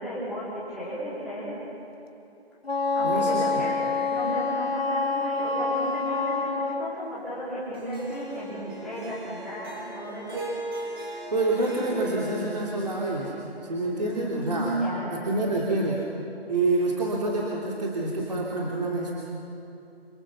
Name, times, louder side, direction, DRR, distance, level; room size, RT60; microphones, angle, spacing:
voice 1, 0.0-1.5 2.9-10.4 14.0-15.2, equal, ahead, -13 dB, 4.0 m, -34 dB
Wind instrument woodwind instrument, 2.6-7.0, left 3 dB, 65° left, 2.1 m, -27 dB
voice 2, 3.0-3.6 11.3-13.3 13.6-14.7 15.1-16.0 16.5-19.1, right 2 dB, 40° right, -3 dB, 3.1 m, -27 dB
Harp, 7.7-14.1, right 1 dB, 20° right, 4.1 m, -39 dB
28.0 x 26.5 x 7.2 m, 2.7 s
figure-of-eight pair, 170°, 32 cm